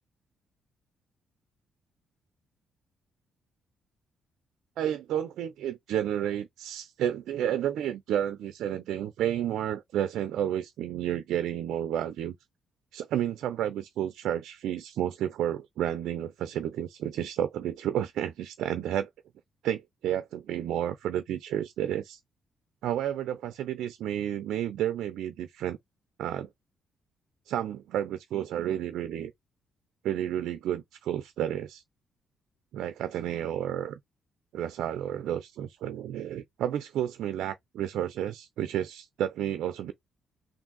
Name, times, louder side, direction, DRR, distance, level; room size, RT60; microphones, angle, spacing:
voice 1, 4.8-12.3 12.9-19.1 19.6-22.2 22.8-25.8 26.2-26.5 27.5-29.3 30.0-31.8 32.7-34.0 34.5-39.9, right 10 dB, 80° right, 0.5 m, -31 dB
3.6 x 2.6 x 3.9 m
cardioid pair, 70°, 0 cm